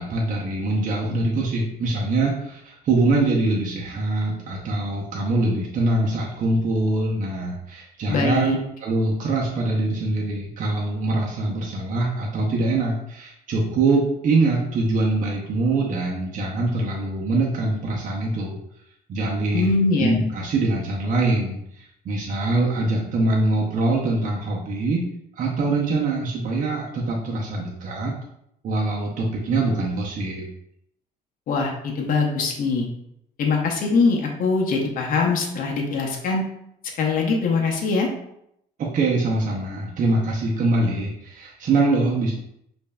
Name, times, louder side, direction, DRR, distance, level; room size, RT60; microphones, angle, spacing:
voice 1, 0.0-8.6 8.8-18.6 19.1-19.7 20.0-25.0 25.3-28.1 28.6-30.4 38.8-42.3, right 2 dB, 50° right, -3 dB, 0.7 m, -23 dB
voice 2, 8.1-8.6 19.5-20.2 31.5-32.9 33.4-36.4 37.0-38.1, left 4 dB, 55° left, 0 dB, 0.8 m, -22 dB
5.2 x 2.6 x 2.3 m, 0.76 s
cardioid pair, 110°, 17 cm